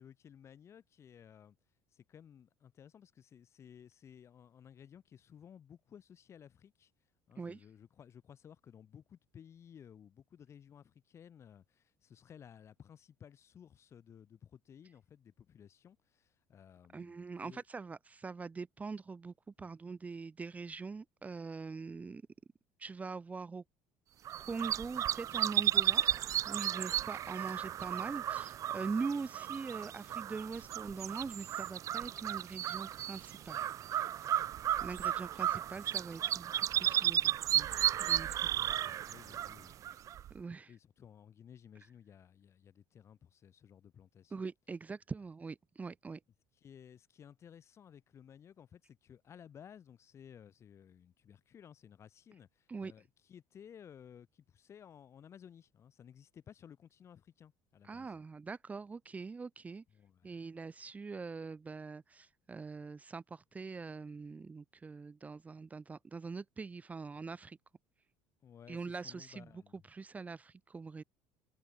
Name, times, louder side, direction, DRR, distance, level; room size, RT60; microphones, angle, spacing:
voice 1, 0.0-1.6 1.9-6.9 7.3-17.6 19.6-19.7 34.3-34.5 38.5-44.4 46.5-58.2 59.9-60.4 68.4-69.9, left 8 dB, 35° left, 7.4 m, -57 dB
voice 2, 16.9-22.2 22.8-23.6 24.5-33.6 34.8-37.7 38.0-38.3 40.3-40.7 44.3-46.2 52.7-52.9 57.8-59.8 60.2-67.6 68.7-69.5 69.9-71.0, right 4 dB, 20° right, 1.9 m, -43 dB
sound 1, 24.2-40.3, right 11 dB, 45° right, 1.1 m, -34 dB
cardioid pair, 125°, 8 cm